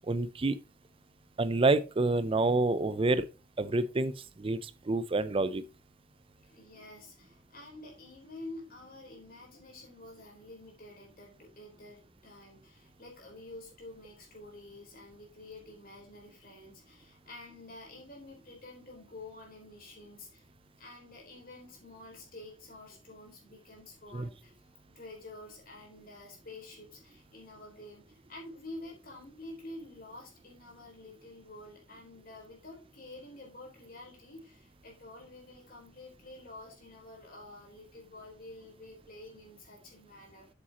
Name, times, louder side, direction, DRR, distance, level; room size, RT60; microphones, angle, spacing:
voice 1, 0.1-0.6 1.4-3.3 3.6-5.6 24.1-24.3, right 2 dB, 30° right, 0.5 m, -28 dB
voice 2, 6.4-20.5 20.8-24.7 24.9-40.5, left 2 dB, 50° left, 3.9 m, -49 dB
8.3 x 7.4 x 2.9 m
head